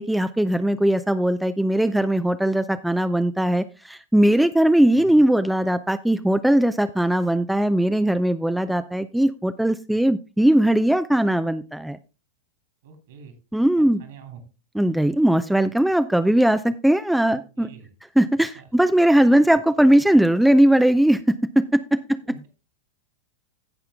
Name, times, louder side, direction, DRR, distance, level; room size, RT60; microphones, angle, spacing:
voice 1, 0.0-12.0 13.5-14.0 14.8-17.7 18.2-22.0, right 1 dB, 5° right, 12 dB, 0.4 m, -19 dB
voice 2, 12.8-13.3 13.8-14.4 15.1-15.2 17.2-17.9 18.5-18.7 22.2-22.5, right 6 dB, 60° right, 8 dB, 2.8 m, -45 dB
15.5 x 5.7 x 3.5 m, 0.30 s
figure-of-eight pair, 90°, 0 cm